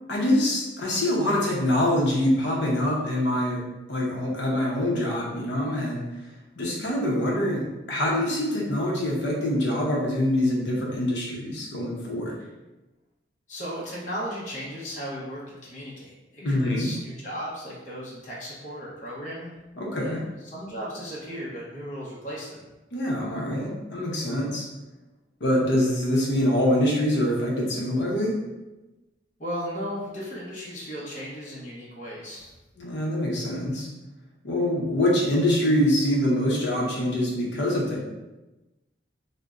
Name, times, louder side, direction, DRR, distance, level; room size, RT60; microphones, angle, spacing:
voice 1, 0.1-3.6 3.9-6.0 6.6-12.4 16.4-16.9 19.8-20.2 22.9-24.7 25.4-28.4 32.8-33.9 34.4-38.0, left 1 dB, 70° left, -2 dB, 0.7 m, -24 dB
voice 2, 13.5-19.5 20.0-22.6 29.4-32.5, equal, 40° left, -6 dB, 0.8 m, -36 dB
2.6 x 2.1 x 3.5 m, 1.1 s
head